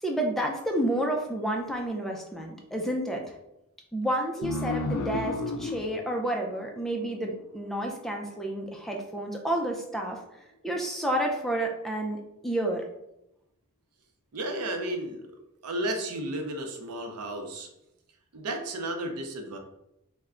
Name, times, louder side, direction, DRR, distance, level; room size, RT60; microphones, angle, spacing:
voice 1, 0.0-3.4 3.9-10.2 10.6-12.8, right 1 dB, ahead, 1 dB, 0.3 m, -30 dB
sound 1, 4.4-7.6, left 2 dB, 85° left, 0.4 m, -33 dB
voice 2, 14.3-15.2 15.6-17.7 18.3-19.6, right 1 dB, 85° right, 3 dB, 0.6 m, -33 dB
3.3 x 2.1 x 3.6 m, 0.85 s
head